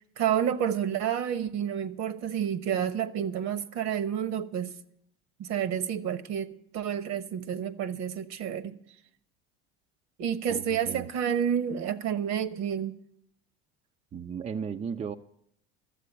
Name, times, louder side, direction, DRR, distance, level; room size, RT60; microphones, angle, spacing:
voice 1, 0.0-4.7 5.4-8.7 10.2-13.0, right 9 dB, 55° right, 1.1 m, -30 dB
voice 2, 10.5-11.1 14.1-15.2, right 6 dB, 20° right, 0.5 m, -35 dB
13.0 x 7.5 x 9.7 m
hypercardioid pair, 85°, 31 cm